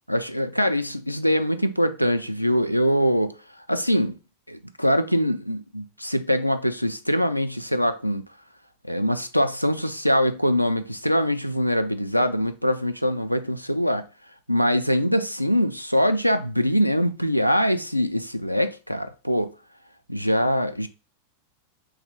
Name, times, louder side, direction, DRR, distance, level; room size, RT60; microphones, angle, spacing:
voice 1, 0.1-3.3 3.7-4.1 4.5-8.2 8.9-14.0 14.5-19.5 20.1-20.9, equal, 90° left, 0.3 m, -23 dB
3.2 x 3.0 x 3.6 m
figure-of-eight pair, 90°, 0 cm